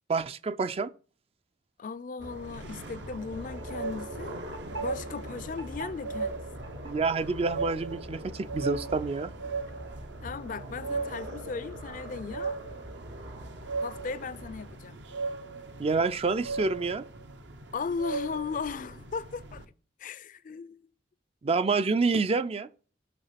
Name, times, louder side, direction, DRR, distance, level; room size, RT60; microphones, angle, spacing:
voice 1, 0.1-0.9 6.8-9.3 15.8-17.0 21.4-22.7, right 4 dB, 35° right, 0.4 m, -28 dB
voice 2, 1.8-4.4 4.7-6.5 10.2-12.6 13.8-15.0 17.7-19.6 20.0-20.9, left 5 dB, 45° left, 0.4 m, -37 dB
sound 1, 2.2-19.7, right 4 dB, 75° right, 1.0 m, -39 dB
sound 2, 2.2-14.8, equal, 90° right, 1.8 m, -43 dB
6.8 x 5.9 x 5.7 m
head